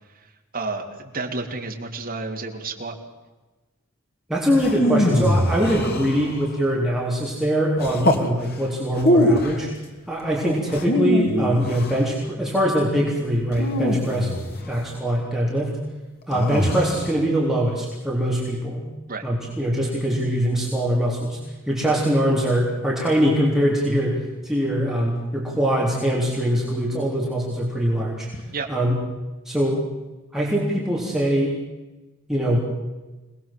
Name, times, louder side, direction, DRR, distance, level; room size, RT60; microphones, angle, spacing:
voice 1, 0.5-2.9 19.1-19.2 28.5-28.7, right 3 dB, 45° right, 1 dB, 3.3 m, -30 dB
voice 2, 4.3-9.7 10.1-14.4 14.7-15.7 16.3-18.8 19.2-21.4 21.7-28.3 28.7-29.0 29.5-29.8 30.3-31.6 32.3-32.7, equal, ahead, -4 dB, 3.7 m, -22 dB
sound 1, 4.6-6.6 7.8-8.3 8.9-9.6 10.7-12.0 13.5-14.7 16.3-17.1, left 1 dB, 45° left, 2.7 m, -23 dB
26.5 x 20.0 x 7.7 m, 1.2 s
head